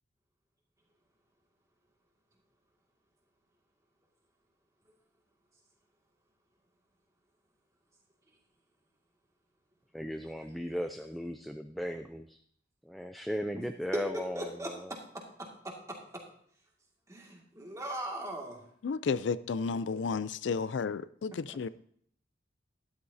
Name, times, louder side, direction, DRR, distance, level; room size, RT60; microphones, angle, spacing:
voice 1, 9.9-12.4 12.9-15.0, equal, ahead, 0.4 m, -37 dB
voice 2, 13.9-15.0 15.6-16.2 17.1-18.6 21.5-21.6, right 1 dB, 15° right, 2.1 m, -38 dB
voice 3, 18.8-21.7, left 5 dB, 80° left, 0.4 m, -32 dB
12.5 x 11.5 x 2.7 m
head